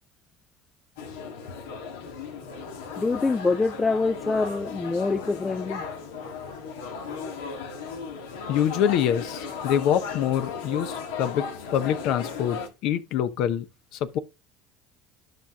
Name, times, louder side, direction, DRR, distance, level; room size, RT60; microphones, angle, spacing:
sound 1, 1.0-12.7, left 5 dB, 80° left, 1.5 m, -36 dB
voice 1, 3.0-5.8, left 3 dB, 20° left, 0.4 m, -25 dB
voice 2, 8.5-13.7 13.9-14.2, left 9 dB, 65° left, 0.8 m, -25 dB
11.5 x 6.1 x 2.3 m
hypercardioid pair, 70°, 0 cm